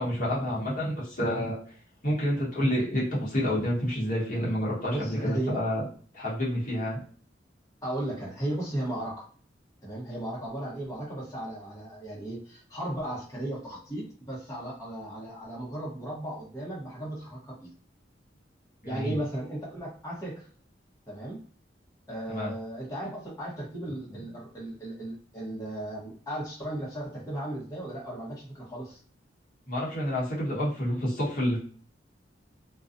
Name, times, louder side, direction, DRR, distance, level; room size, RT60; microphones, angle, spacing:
voice 1, 0.0-1.6 2.0-5.8 6.1-7.0 12.1-12.2 18.8-19.1 22.3-22.5 29.7-31.6, equal, 45° left, -5 dB, 1.0 m, -28 dB
voice 2, 4.9-5.6 7.8-9.2 9.8-17.7 18.8-20.5 21.1-21.4 22.1-29.0, right 1 dB, 20° left, -6 dB, 0.9 m, -35 dB
2.5 x 2.3 x 2.4 m, 0.44 s
head